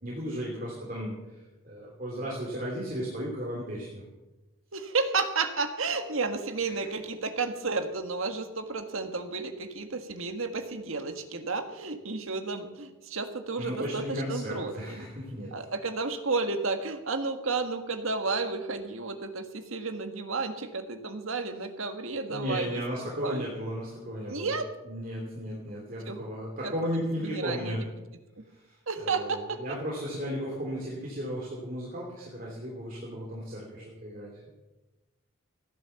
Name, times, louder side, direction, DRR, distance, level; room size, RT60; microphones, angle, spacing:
voice 1, 0.0-4.0 6.6-6.9 13.6-15.5 22.3-24.5 24.8-27.8 28.4-34.3, equal, 40° right, -4 dB, 3.2 m, -35 dB
voice 2, 4.7-15.0 15.5-22.8 23.2-23.5 24.3-24.7 26.1-26.2 26.6-26.7 27.0-27.8 28.9-29.6, right 4 dB, 75° right, 7 dB, 1.6 m, -32 dB
15.5 x 11.0 x 7.0 m, 1.1 s
head